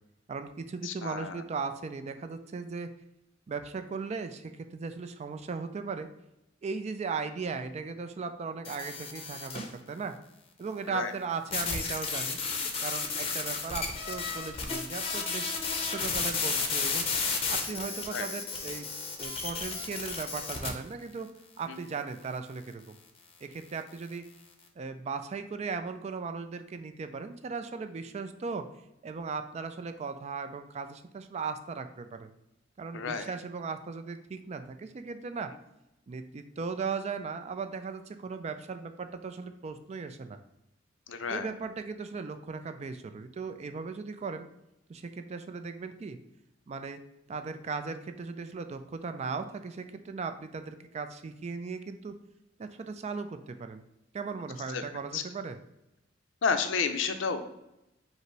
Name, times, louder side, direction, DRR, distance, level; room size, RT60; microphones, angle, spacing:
voice 1, 0.3-2.9 3.5-6.1 6.6-10.2 10.6-12.4 12.8-15.5 15.9-17.1 17.5-18.9 19.2-21.3 21.6-23.0 23.4-24.2 24.8-28.7 29.0-32.3 32.8-35.5 36.1-40.4 41.3-44.5 44.9-46.2 46.7-47.0 47.3-52.1 52.6-53.8 54.1-55.6, right 5 dB, 35° right, 9 dB, 0.3 m, -37 dB
voice 2, 0.8-1.4 10.9-11.1 18.1-18.3 21.7-21.8 32.9-33.3 41.1-41.5 54.7-54.8 55.1-55.2 56.4-57.4, left 5 dB, 80° left, 9 dB, 0.5 m, -31 dB
sound 1, 8.6-9.7 11.5-20.7, left 4 dB, 30° left, 0.6 m, -33 dB
5.3 x 2.0 x 4.5 m, 0.88 s
head